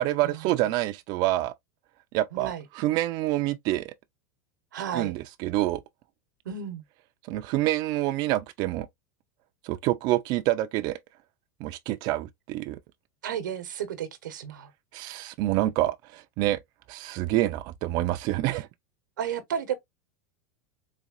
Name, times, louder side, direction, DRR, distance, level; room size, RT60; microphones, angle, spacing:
voice 1, 0.0-1.5 2.1-3.9 4.9-5.8 7.3-8.9 9.6-11.0 11.6-12.8 14.9-16.6 16.9-18.7, right 15 dB, 50° right, 0.4 m, -27 dB
voice 2, 2.3-2.6 4.7-5.1 6.4-6.8 13.2-14.7 19.2-19.7, right 8 dB, 90° right, 0.9 m, -33 dB
4.1 x 2.7 x 2.4 m
hypercardioid pair, 110°, 10 cm